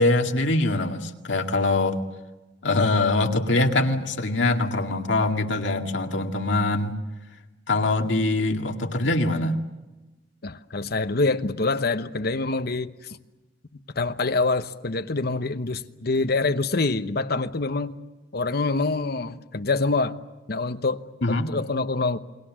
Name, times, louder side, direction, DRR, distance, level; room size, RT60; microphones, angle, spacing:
voice 1, 0.0-2.0 2.6-6.9 7.7-9.6 21.2-21.5, left 2 dB, 75° left, 4 dB, 2.0 m, -23 dB
voice 2, 10.4-13.2 13.9-18.0 18.3-20.2 20.5-22.2, left 3 dB, 55° left, 10 dB, 1.0 m, -26 dB
29.0 x 21.5 x 7.5 m, 1.1 s
head